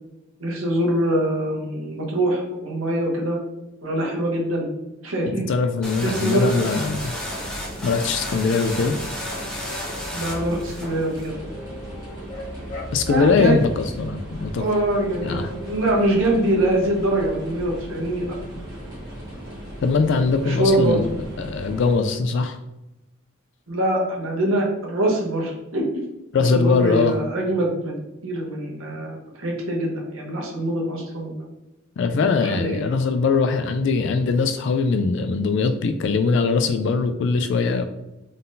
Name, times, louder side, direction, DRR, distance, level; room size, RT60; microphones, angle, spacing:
voice 1, 0.4-3.4 3.8-4.7 5.0-5.5 6.0-6.7 10.1-11.3 13.1-13.6 14.5-18.3 20.4-21.0 23.7-25.8 26.5-31.5 32.4-32.8, right 1 dB, 85° right, -2 dB, 1.1 m, -24 dB
voice 2, 5.5-7.1 7.8-9.0 12.9-14.6 15.2-15.5 19.8-21.0 21.4-22.6 26.3-27.2 32.0-37.9, left 4 dB, 60° left, 8 dB, 0.3 m, -21 dB
sound 1, 5.8-11.3, left 1 dB, 5° left, 1.0 m, -33 dB
sound 2, 6.8-22.0, equal, 20° right, 1.3 m, -37 dB
sound 3, 10.2-10.6 11.3-13.9 15.3-15.9, equal, 35° left, 1.0 m, -37 dB
3.9 x 3.8 x 2.6 m, 0.97 s
head